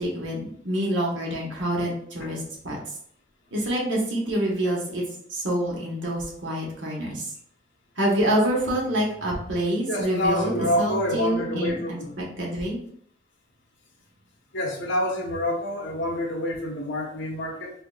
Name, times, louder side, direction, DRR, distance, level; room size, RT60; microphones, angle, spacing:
voice 1, 0.0-2.8 3.5-5.0 5.3-7.3 8.0-12.8, right 1 dB, 85° right, -3 dB, 1.2 m, -27 dB
voice 2, 9.9-12.1 14.5-17.7, left 1 dB, 85° left, -1 dB, 1.0 m, -27 dB
3.7 x 3.4 x 2.3 m, 0.64 s
head